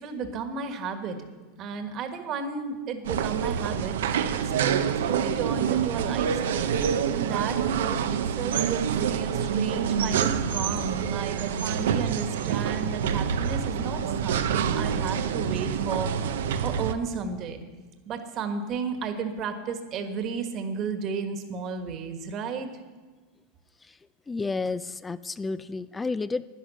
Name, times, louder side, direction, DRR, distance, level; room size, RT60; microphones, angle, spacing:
voice 1, 0.0-1.2 1.6-3.9 4.6-6.8 7.1-8.0 8.4-16.1 16.6-17.6 18.1-22.7, right 5 dB, 40° right, 7 dB, 1.5 m, -33 dB
sound 1, 3.0-16.9, right 8 dB, 85° right, 0.7 m, -27 dB
voice 2, 24.3-26.5, left 3 dB, 15° left, 15 dB, 0.3 m, -31 dB
11.0 x 10.5 x 6.4 m, 1.3 s
supercardioid pair, 125°, 0 cm